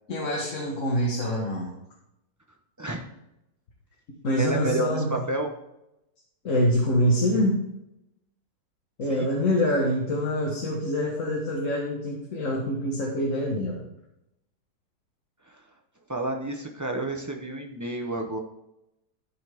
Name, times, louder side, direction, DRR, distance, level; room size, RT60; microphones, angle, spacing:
voice 1, 0.1-1.7 4.2-5.1 6.4-7.7 9.0-13.8, equal, 50° left, -2 dB, 1.6 m, -25 dB
voice 2, 2.8-3.1 4.4-5.5 9.1-9.3 15.5-15.6 16.1-18.4, right 1 dB, 25° right, 2 dB, 0.3 m, -30 dB
13.0 x 5.6 x 3.6 m, 0.86 s
omnidirectional pair, 1.8 m